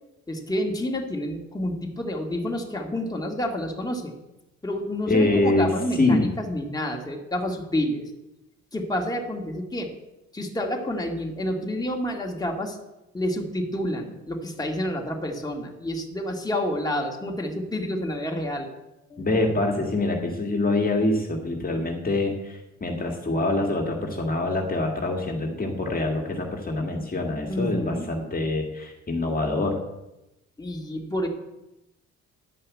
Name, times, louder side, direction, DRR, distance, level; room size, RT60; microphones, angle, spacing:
voice 1, 0.3-4.1 4.6-8.1 8.7-9.9 10.3-12.8 13.1-18.7 19.1-19.3 27.5-28.1 30.6-31.3, left 1 dB, 15° left, 0 dB, 2.1 m, -29 dB
voice 2, 5.1-6.3 19.2-29.8, left 2 dB, 30° left, 1 dB, 2.0 m, -25 dB
11.0 x 5.5 x 8.4 m, 0.95 s
cardioid pair, 90°, 30 cm